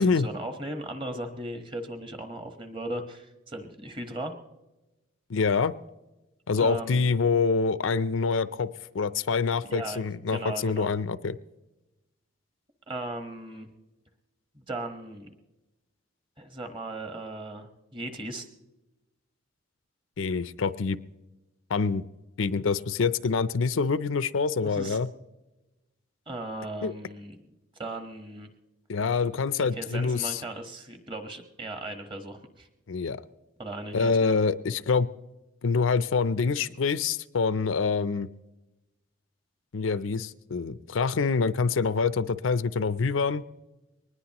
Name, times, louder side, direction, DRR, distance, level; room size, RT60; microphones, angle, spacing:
voice 1, 0.0-4.3 6.6-7.1 9.6-10.0 10.3-10.9 12.9-13.7 14.5-15.3 16.4-18.5 24.6-25.0 26.3-27.4 27.8-28.5 29.6-32.7 33.6-34.3, right 1 dB, 25° right, 6 dB, 1.3 m, -37 dB
voice 2, 5.3-5.7 6.5-11.4 20.2-21.0 21.7-22.0 22.4-25.1 26.8-26.9 28.9-30.4 32.9-33.2 33.9-35.1 35.6-38.3 39.7-43.4, left 4 dB, 75° left, 15 dB, 0.5 m, -26 dB
22.0 x 19.5 x 3.0 m, 1.0 s
head